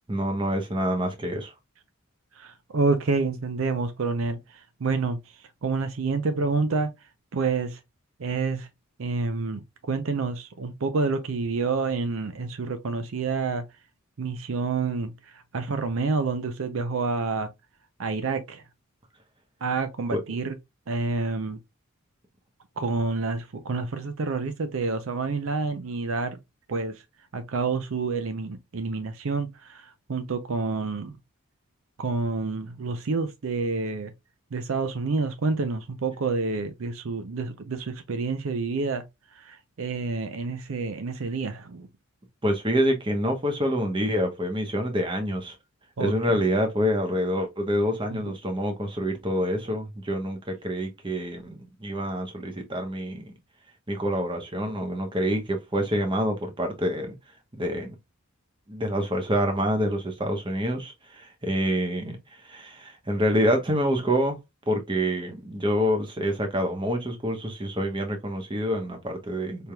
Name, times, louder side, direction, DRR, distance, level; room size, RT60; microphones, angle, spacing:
voice 1, 0.1-1.5 20.1-20.2 42.4-45.5 46.0-53.3 53.9-57.1 57.5-57.9 58.7-64.4 64.7-69.7, equal, 20° right, 0.9 m, -27 dB
voice 2, 2.4-5.2 5.6-6.9 7.3-7.8 8.2-8.7 9.0-13.6 14.2-17.5 18.0-18.6 19.6-20.5 20.9-21.6 22.8-26.4 26.7-27.0 27.3-31.2 32.0-34.1 34.5-39.0 39.3-41.9 46.0-46.1 48.1-48.3, right 4 dB, 65° right, 0.5 m, -28 dB
4.4 x 3.4 x 2.2 m
head